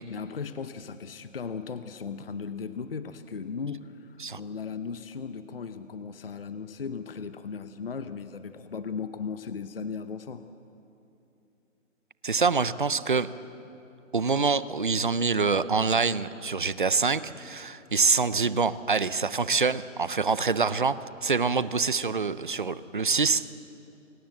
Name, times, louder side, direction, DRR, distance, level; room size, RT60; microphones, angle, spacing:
voice 1, 0.0-10.4, left 5 dB, 45° left, 10 dB, 0.8 m, -37 dB
voice 2, 12.2-13.3 14.1-23.4, right 4 dB, 40° right, 15 dB, 0.6 m, -25 dB
28.5 x 17.5 x 7.8 m, 2.8 s
hypercardioid pair, 180°, 39 cm